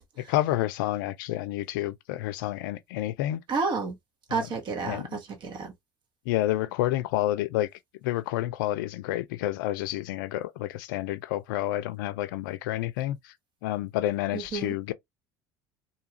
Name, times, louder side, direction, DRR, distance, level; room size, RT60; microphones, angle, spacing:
voice 1, 0.3-3.4 4.3-4.5 4.8-5.2 6.3-7.7 8.0-13.3 13.6-14.9, left 15 dB, 75° left, 0.4 m, -29 dB
voice 2, 3.5-4.0 4.3-5.7 14.3-14.7, right 4 dB, 45° right, 1.2 m, -31 dB
2.7 x 2.4 x 2.8 m
hypercardioid pair, 80°, 11 cm